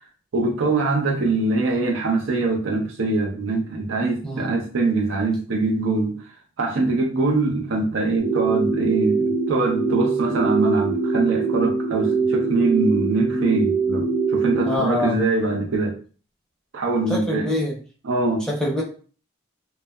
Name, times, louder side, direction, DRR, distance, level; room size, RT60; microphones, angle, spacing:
voice 1, 0.3-6.1 6.6-16.0 16.7-17.5 18.0-18.5, right 3 dB, 75° right, 0.5 m, -23 dB
voice 2, 4.2-4.5 14.7-15.2 17.1-17.7 18.5-18.8, left 1 dB, 5° left, 0.5 m, -24 dB
sound 1, 8.2-14.8, right 4 dB, 45° right, 1.0 m, -23 dB
2.7 x 2.1 x 2.2 m
head